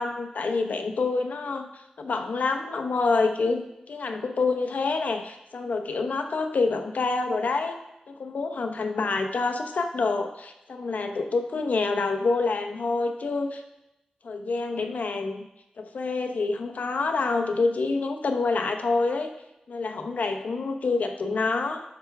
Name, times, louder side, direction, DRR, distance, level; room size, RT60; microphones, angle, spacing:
voice 1, 0.0-7.8 8.1-13.6 14.2-15.5 15.8-19.3 19.7-21.8, left 3 dB, 85° left, 6 dB, 0.9 m, -27 dB
12.5 x 5.9 x 3.5 m, 0.90 s
wide cardioid pair, 70°, 3 cm